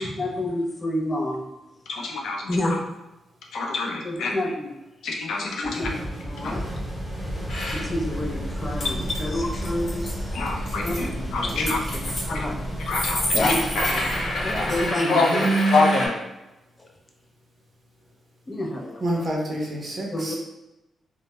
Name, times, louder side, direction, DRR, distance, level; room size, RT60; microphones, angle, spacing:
voice 1, 0.0-1.4 2.5-2.8 4.0-4.7 5.4-5.9 6.2-6.6 7.7-10.3 10.8-12.0 12.3-12.5 13.3-13.6 13.9-15.3 16.8-16.9 18.5-19.3 20.1-20.3, left 1 dB, 20° left, 2 dB, 0.3 m, -29 dB
voice 2, 1.9-2.6 3.5-4.3 5.0-5.9 6.4-6.5 10.3-11.8 12.3-12.4 12.9-13.5 15.1-15.3 15.7-16.1, left 3 dB, 90° left, 0 dB, 0.4 m, -26 dB
sound 1, 5.6-15.0, equal, 5° right, 0.8 m, -32 dB
sound 2, 7.5-7.8 8.1-9.2 9.5-10.1 10.5-11.0 11.3-12.2 12.8-16.1, left 1 dB, 65° left, 0.8 m, -28 dB
voice 3, 14.7-15.9 19.0-20.4, right 2 dB, 40° right, -2 dB, 0.6 m, -26 dB
2.1 x 2.1 x 2.8 m, 0.98 s
wide cardioid pair, 135°, 0 cm